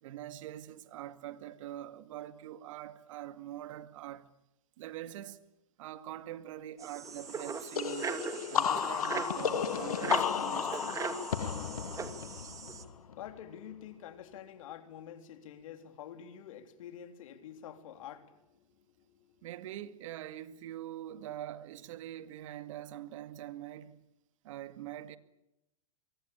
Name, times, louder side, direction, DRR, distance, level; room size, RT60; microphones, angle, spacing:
voice 1, 0.0-4.3 4.8-5.4 5.8-8.2 8.5-11.0 19.4-24.0 24.4-25.2, right 12 dB, 65° right, 2.1 m, -44 dB
sound 1, 6.8-12.8, right 5 dB, 20° right, 2.6 m, -40 dB
sound 2, 7.7-13.3, left 8 dB, 85° left, 2.0 m, -33 dB
voice 2, 11.6-19.5, left 9 dB, 70° left, 3.7 m, -49 dB
25.0 x 23.5 x 8.8 m
hypercardioid pair, 120°, 18 cm